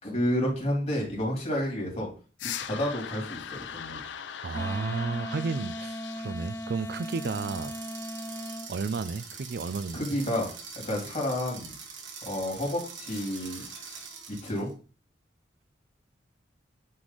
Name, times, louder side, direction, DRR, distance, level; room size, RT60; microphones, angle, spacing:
voice 1, 0.0-2.1 2.6-4.1 9.9-10.5 10.8-11.7 12.2-13.6 14.3-14.7, left 1 dB, 40° left, 3.1 m, -30 dB
sound 1, 2.4-7.4 13.1-14.1, left 8 dB, 75° left, 0.5 m, -41 dB
voice 2, 4.4-7.8 8.7-10.2, right 4 dB, 55° right, 0.4 m, -32 dB
Wind instrument woodwind instrument, 4.5-8.7, equal, 15° left, 0.5 m, -37 dB
sound 2, 6.9-14.7, right 5 dB, 90° right, 1.6 m, -44 dB
9.5 x 3.2 x 4.1 m
head